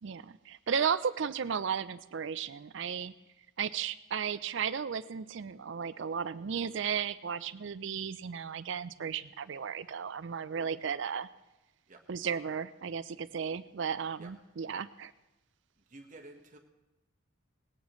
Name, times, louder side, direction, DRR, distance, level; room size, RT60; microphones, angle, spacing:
voice 1, 0.0-3.1 3.6-11.3 12.1-15.1, right 7 dB, 55° right, 15 dB, 0.4 m, -34 dB
voice 2, 15.9-16.6, right 2 dB, 35° right, 3 dB, 1.3 m, -51 dB
19.0 x 17.0 x 3.1 m, 1.0 s
head